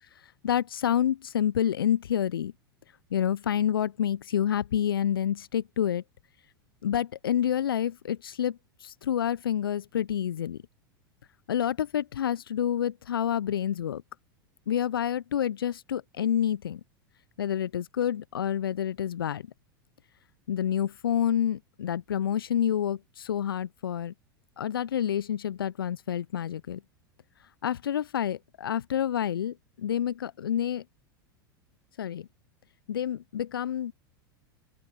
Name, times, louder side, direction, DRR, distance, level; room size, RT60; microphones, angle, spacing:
voice 1, 0.2-2.5 3.1-6.0 6.8-10.6 11.5-14.0 14.7-16.8 17.4-19.4 20.5-24.1 24.6-26.8 27.6-30.8 32.0-32.3 32.9-33.9, left 10 dB, 70° left, 0.9 m, -28 dB
open air
figure-of-eight pair, 85°, 12 cm